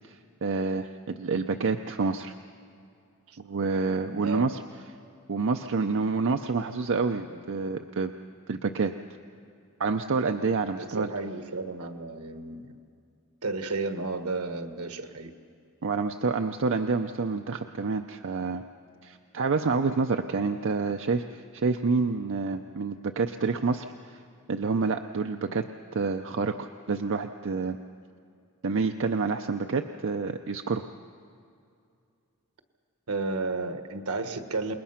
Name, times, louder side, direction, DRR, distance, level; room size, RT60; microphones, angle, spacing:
voice 1, 0.1-2.3 3.4-4.6 5.3-8.1 8.5-8.9 9.8-11.1 15.8-18.6 19.0-24.2 24.5-25.7 25.9-27.8 28.6-30.8, right 4 dB, 60° right, 6 dB, 0.6 m, -28 dB
voice 2, 4.2-4.5 7.3-7.5 10.7-12.7 13.4-15.3 33.1-34.7, right 3 dB, 80° right, 8 dB, 1.4 m, -32 dB
28.0 x 20.5 x 5.8 m, 2.4 s
head